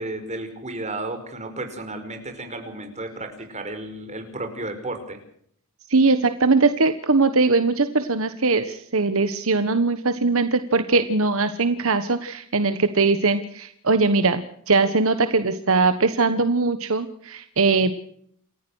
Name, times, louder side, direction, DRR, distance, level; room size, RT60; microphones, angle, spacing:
voice 1, 0.0-5.2, right 2 dB, 30° right, 6 dB, 4.9 m, -33 dB
voice 2, 5.9-17.9, right 3 dB, 65° right, 10 dB, 1.3 m, -21 dB
28.5 x 14.5 x 6.4 m, 0.65 s
head